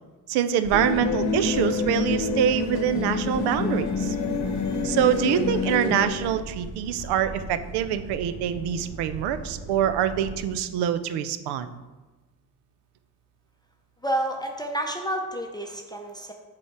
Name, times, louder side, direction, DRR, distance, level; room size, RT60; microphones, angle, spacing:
voice 1, 0.3-4.2 4.8-11.7, right 10 dB, 85° right, 12 dB, 0.5 m, -25 dB
sound 1, 0.6-10.4, right 2 dB, 55° right, 1.1 m, -39 dB
sound 2, 0.7-6.1, left 4 dB, 45° left, 0.9 m, -27 dB
voice 2, 14.0-16.3, right 1 dB, 10° left, 2 dB, 0.5 m, -29 dB
6.9 x 3.5 x 4.6 m, 1.2 s
cardioid pair, 110°, 38 cm